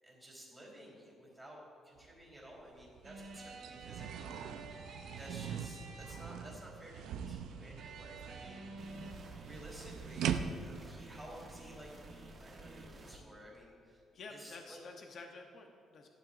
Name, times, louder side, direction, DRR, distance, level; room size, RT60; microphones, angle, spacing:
voice 1, 0.0-4.3 5.1-8.6 9.4-11.9 12.3-14.0 14.3-14.8, right 1 dB, 10° right, -3 dB, 2.8 m, -53 dB
sound 1, 2.0-2.1 2.5-10.9, right 8 dB, 85° right, 0.5 m, -42 dB
sound 2, 3.0-6.5 7.8-9.1, right 3 dB, 70° right, 2.8 m, -51 dB
sound 3, 8.8-13.2, right 2 dB, 25° right, 1.2 m, -52 dB
voice 2, 14.1-16.1, left 3 dB, 45° left, 3 dB, 0.8 m, -50 dB
15.0 x 12.0 x 2.5 m, 2.7 s
cardioid pair, 155°, 0 cm